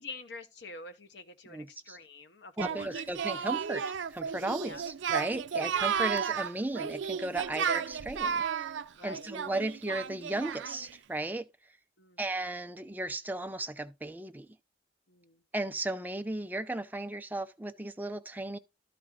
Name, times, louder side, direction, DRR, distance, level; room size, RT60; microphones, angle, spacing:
voice 1, 0.0-3.1 4.6-4.8 5.9-6.1 8.9-9.3 12.0-12.3 15.1-15.4, left 3 dB, 65° left, 1.0 m, -47 dB
voice 2, 1.5-2.0 2.6-3.8 4.1-4.8 5.1-8.4 9.0-11.5 12.2-14.5 15.5-18.6, right 2 dB, 10° right, 0.5 m, -35 dB
Singing, 2.6-10.9, right 7 dB, 80° right, 0.4 m, -33 dB
12.5 x 4.3 x 3.8 m
head